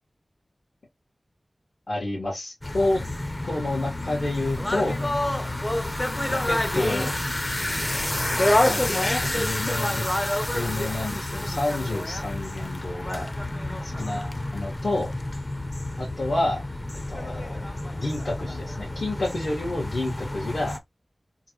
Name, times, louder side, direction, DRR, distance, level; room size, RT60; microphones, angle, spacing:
voice 1, 1.9-3.0 3.4-5.1 6.3-7.2 8.7-10.1 10.5-13.3 13.8-15.1 16.0-16.6 17.1-17.7 18.0-20.8, left 2 dB, 85° left, 2.0 m, -29 dB
sound 1, 2.6-20.8, left 1 dB, 30° left, 0.6 m, -28 dB
3.8 x 2.6 x 3.1 m
wide cardioid pair, 60°, 0 cm